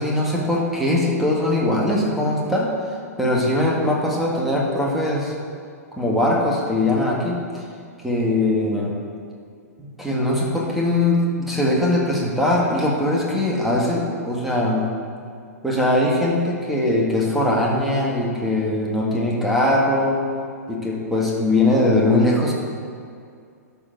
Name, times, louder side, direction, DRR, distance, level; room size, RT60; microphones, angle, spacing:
voice 1, 0.0-2.7 3.2-5.3 5.9-7.6 8.0-8.9 9.8-14.9 15.6-20.2 20.7-22.5, left 1 dB, ahead, -4 dB, 1.9 m, -21 dB
12.5 x 4.6 x 6.3 m, 2.3 s
figure-of-eight pair, 105°, 9 cm